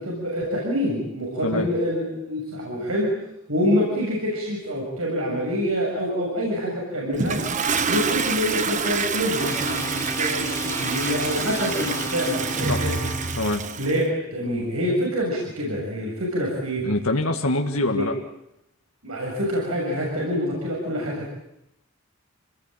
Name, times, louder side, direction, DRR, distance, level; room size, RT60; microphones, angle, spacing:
voice 1, 0.0-3.1 3.5-7.4 7.9-12.9 13.8-16.8 17.9-18.1 19.0-21.3, equal, 85° right, -3 dB, 7.1 m, -26 dB
Toilet flush, 7.1-14.0, right 5 dB, 35° right, 1.2 m, -27 dB
sound 1, 9.4-13.3, left 1 dB, 15° left, 1.3 m, -33 dB
voice 2, 16.8-18.1, left 2 dB, 90° left, 3 dB, 1.9 m, -24 dB
28.5 x 19.0 x 9.1 m, 0.82 s
head